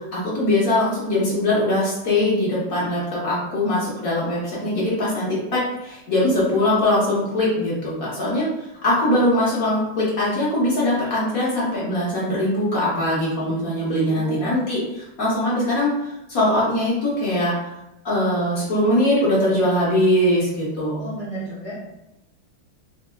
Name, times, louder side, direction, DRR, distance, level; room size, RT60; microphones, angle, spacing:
voice 1, 0.1-8.5 8.8-17.5 18.0-21.0, left 1 dB, 50° left, -8 dB, 1.3 m, -21 dB
voice 2, 14.1-14.5 21.0-21.7, right 1 dB, 55° right, -9 dB, 0.8 m, -33 dB
4.4 x 2.7 x 2.2 m, 0.91 s
omnidirectional pair, 2.2 m